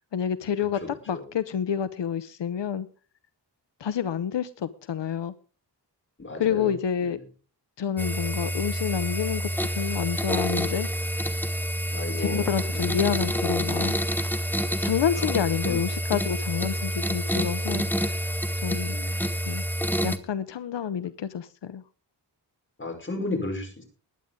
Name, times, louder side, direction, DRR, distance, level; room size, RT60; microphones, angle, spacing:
voice 1, 0.1-0.8 1.1-2.9 3.8-5.3 6.4-7.2 7.8-11.1 12.2-14.0 14.8-18.1 18.6-19.0 19.5-19.6 20.0-21.8, left 8 dB, 85° left, 0.8 m, -28 dB
voice 2, 0.8-1.2 6.2-6.7 11.9-12.5 12.7-13.0 15.1-15.3 15.6-15.8 18.9-19.3 22.8-23.8, left 2 dB, 30° left, 5.6 m, -33 dB
sound 1, 8.0-20.2, equal, 5° left, 1.1 m, -28 dB
20.5 x 9.6 x 3.7 m
wide cardioid pair, 125°, 42 cm